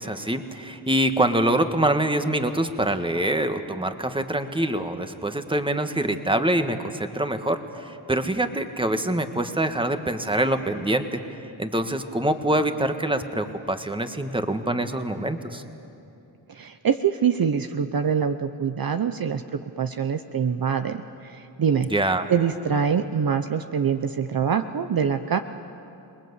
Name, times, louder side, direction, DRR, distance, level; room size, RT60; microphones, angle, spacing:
voice 1, 0.0-11.2 11.6-15.6 21.9-22.3, right 1 dB, 10° right, 7 dB, 1.6 m, -25 dB
voice 2, 16.5-19.4 19.8-21.9 22.3-25.4, right 7 dB, 50° right, 8 dB, 0.8 m, -24 dB
27.0 x 20.0 x 8.2 m, 2.7 s
cardioid pair, 55°, 45 cm